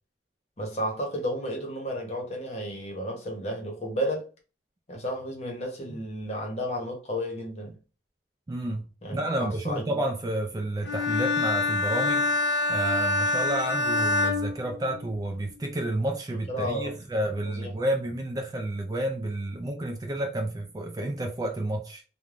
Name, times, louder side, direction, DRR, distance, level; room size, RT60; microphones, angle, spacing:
voice 1, 0.6-4.2 4.9-7.8 9.0-10.0 16.5-17.0 17.5-17.7, equal, 35° left, 0.9 m, -32 dB
voice 2, 8.5-12.3 12.7-22.0, right 1 dB, 20° right, 0.3 m, -30 dB
Bowed string instrument, 10.8-15.3, left 2 dB, 70° left, 0.6 m, -26 dB
3.3 x 2.2 x 2.4 m
head